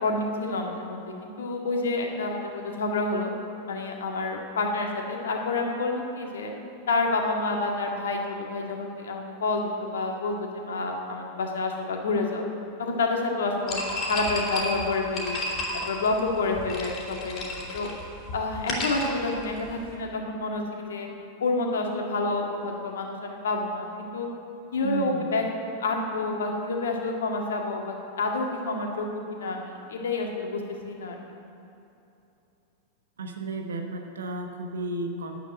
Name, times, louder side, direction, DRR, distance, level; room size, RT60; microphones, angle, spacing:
voice 1, 0.0-3.3 3.7-6.5 6.9-12.4 12.8-15.4 15.9-17.4 17.7-17.9 18.3-21.1 21.4-24.3 24.7-25.4 25.8-31.2, left 3 dB, 65° left, 1 dB, 1.8 m, -28 dB
sound 1, 13.7-19.9, left 1 dB, 30° left, 3.3 m, -33 dB
voice 2, 24.8-25.3 33.2-35.4, right 2 dB, 65° right, 4 dB, 1.0 m, -33 dB
9.9 x 9.2 x 8.8 m, 2.8 s
figure-of-eight pair, 90°, 0 cm